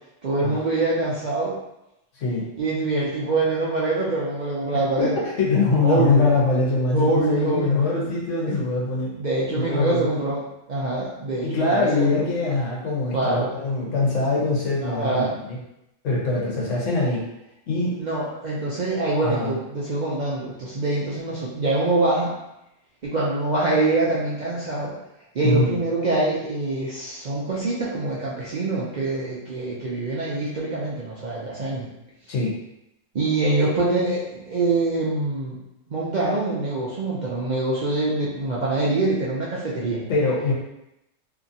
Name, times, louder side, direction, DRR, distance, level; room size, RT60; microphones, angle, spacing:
voice 1, 0.2-1.5 2.6-5.2 5.8-6.3 6.9-7.7 9.1-10.4 10.7-12.3 13.1-13.5 14.8-15.4 18.0-22.3 23.0-24.9 25.3-31.9 33.1-35.6 35.9-40.0, right 2 dB, 60° right, -6 dB, 0.4 m, -24 dB
voice 2, 2.2-2.5 4.7-9.1 9.5-10.1 11.4-15.6 16.0-17.3 17.7-18.0 19.2-19.5 25.4-25.8 32.3-32.6 40.1-40.5, left 3 dB, 70° left, -3 dB, 1.1 m, -23 dB
2.8 x 2.5 x 2.6 m, 0.86 s
omnidirectional pair, 1.4 m